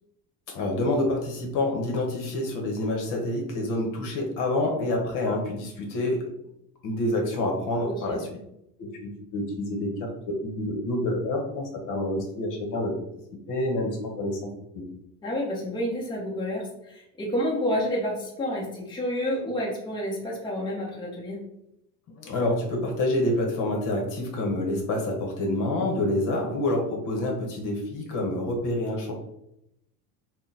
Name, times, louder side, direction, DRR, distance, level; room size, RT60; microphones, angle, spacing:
voice 1, 0.5-6.2 6.8-8.3 8.8-13.0 13.5-14.4 14.7-14.8 22.2-29.1, left 1 dB, 50° left, 1 dB, 1.1 m, -27 dB
voice 2, 7.8-8.2 15.2-21.4, equal, 10° left, -4 dB, 0.8 m, -29 dB
3.7 x 2.2 x 4.0 m, 0.81 s
cardioid pair, 140°, 40 cm